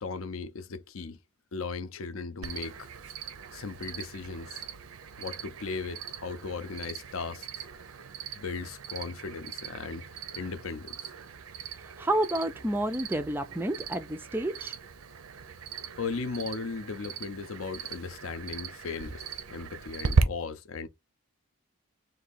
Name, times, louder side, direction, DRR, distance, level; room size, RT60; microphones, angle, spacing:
voice 1, 0.0-1.2 1.5-3.2 3.5-4.6 5.2-7.6 8.3-10.0 10.3-11.1 16.0-20.9, left 4 dB, 70° left, 0.5 m, -37 dB
Cricket, 2.4-20.2, right 5 dB, 80° right, 0.6 m, -37 dB
voice 2, 12.0-14.8, right 1 dB, 10° right, 0.3 m, -30 dB
3.9 x 2.6 x 4.0 m
head